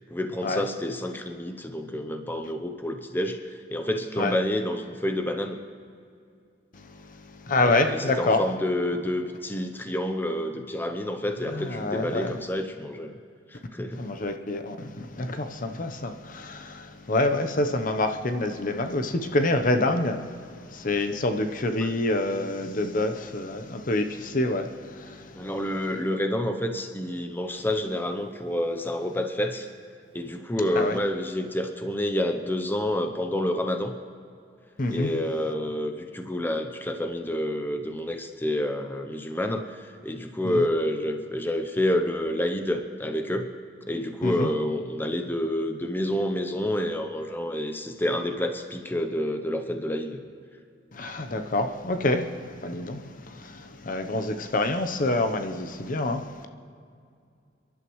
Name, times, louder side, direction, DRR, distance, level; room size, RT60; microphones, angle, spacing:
voice 1, 0.1-3.4 3.7-5.6 7.6-13.1 13.5-14.0 21.8-21.9 25.3-29.7 30.1-33.9 34.9-43.5 43.9-50.2, left 1 dB, 10° left, 0.7 m, -28 dB
voice 2, 6.7-8.4 11.5-12.4 13.9-25.5 30.8-31.0 34.8-35.1 40.4-40.6 44.2-44.5 50.9-56.5, left 2 dB, 50° left, 0.8 m, -27 dB
29.5 x 11.5 x 3.1 m
head